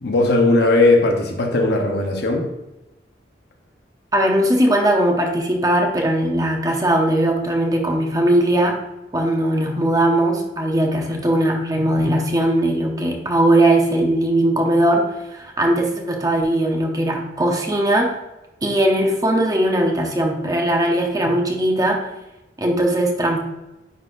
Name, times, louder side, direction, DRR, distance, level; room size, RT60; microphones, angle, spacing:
voice 1, 0.0-2.5, left 2 dB, 60° left, 1.0 m, -17 dB
voice 2, 4.1-8.8 9.1-15.1 15.3-18.1 18.6-22.1 22.6-23.4, right 1 dB, 20° right, 0.8 m, -19 dB
9.3 x 4.1 x 2.6 m
head